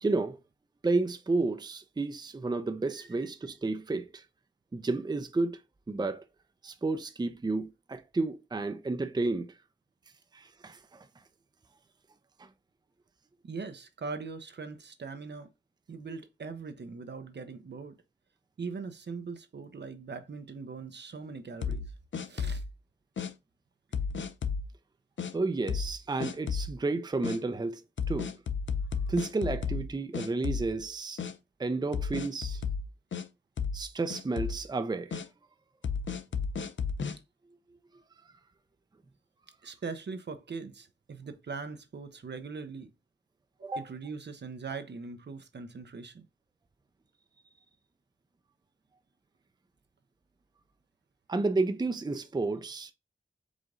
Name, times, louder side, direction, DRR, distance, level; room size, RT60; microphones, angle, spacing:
voice 1, 0.0-0.4 0.8-4.2 4.7-5.6 5.9-6.2 6.6-9.5 10.3-11.1 12.4-12.5 25.3-27.8 28.1-28.3 29.1-31.2 31.6-32.6 33.7-35.2 43.6-43.9 51.3-52.9, right 3 dB, 20° right, 0.5 m, -31 dB
voice 2, 13.4-15.5 15.9-18.0 18.6-21.9 22.3-22.6 39.6-42.9 43.6-46.2, right 4 dB, 60° right, 0.7 m, -41 dB
sound 1, 21.6-22.7 23.2-23.3 23.9-24.7 25.2-25.3 25.7-25.9 26.2-26.7 27.2-27.4 28.0-29.9 30.1-30.9 31.2-31.3 31.9-33.2 33.6-33.8 34.1-34.6 35.1-35.2 35.8-37.2, left 6 dB, 70° left, 0.5 m, -33 dB
5.0 x 2.5 x 3.7 m
cardioid pair, 55°, 20 cm